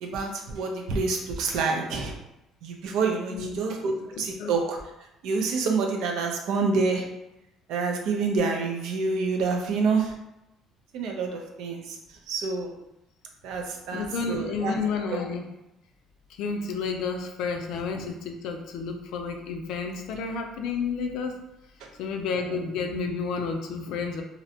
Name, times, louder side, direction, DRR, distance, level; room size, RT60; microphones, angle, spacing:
voice 1, 0.0-2.1 2.6-4.8 5.2-7.1 7.7-10.1 10.9-12.0 12.3-12.7 13.4-14.7 15.1-15.2, right 4 dB, 75° right, 2 dB, 0.5 m, -27 dB
voice 2, 3.3-3.6 4.2-4.5 13.9-15.5 16.4-21.4 22.0-24.2, left 5 dB, 75° left, 3 dB, 0.4 m, -31 dB
2.6 x 2.1 x 2.7 m, 0.89 s
cardioid pair, 140°, 0 cm